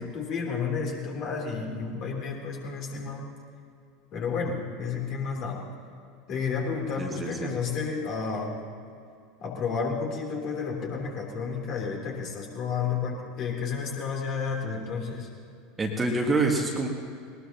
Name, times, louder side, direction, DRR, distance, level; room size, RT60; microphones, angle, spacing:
voice 1, 0.0-3.3 4.1-5.6 6.3-8.5 9.4-15.3, left 5 dB, 40° left, -1 dB, 3.4 m, -31 dB
voice 2, 7.0-7.5 15.8-16.9, right 2 dB, 15° right, 1 dB, 1.9 m, -26 dB
21.0 x 19.5 x 3.0 m, 2.4 s
figure-of-eight pair, 80°, 0 cm